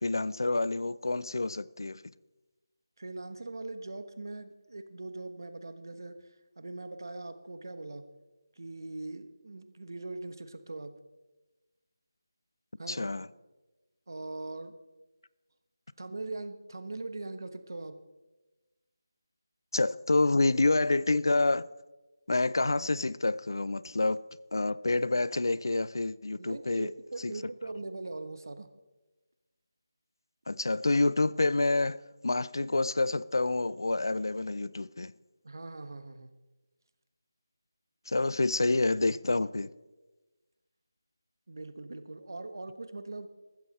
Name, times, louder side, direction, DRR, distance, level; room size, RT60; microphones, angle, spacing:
voice 1, 0.0-2.0 12.9-13.3 19.7-21.7 22.3-24.2 24.5-26.9 27.2-27.3 30.5-32.0 32.2-35.1 38.1-39.7, left 2 dB, 70° left, 0.5 m, -28 dB
voice 2, 3.0-8.1 8.6-10.9 12.8-13.1 14.1-14.7 16.0-18.0 26.4-28.7 35.4-36.3 41.5-43.3, right 2 dB, 55° right, 1.2 m, -41 dB
15.0 x 13.5 x 4.2 m
figure-of-eight pair, 180°, 2 cm